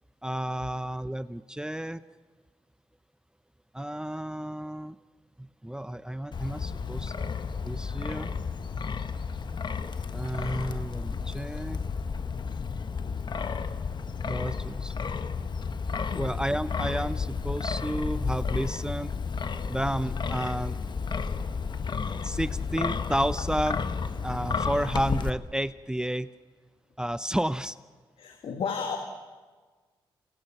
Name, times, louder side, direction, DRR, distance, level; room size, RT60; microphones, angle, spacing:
voice 1, 0.2-2.0 3.7-5.0 5.4-7.1 7.6-8.3 10.1-11.8 14.2-15.0 15.9-19.1 19.7-20.8 22.2-23.8 24.2-26.3 27.0-27.8, right 1 dB, 10° right, 15 dB, 0.7 m, -31 dB
Wind, 6.3-25.3, left 5 dB, 50° left, 1.3 m, -32 dB
voice 2, 28.2-29.0, left 6 dB, 75° left, 4 dB, 2.1 m, -33 dB
28.0 x 27.0 x 6.1 m, 1.4 s
cardioid pair, 60°, 10 cm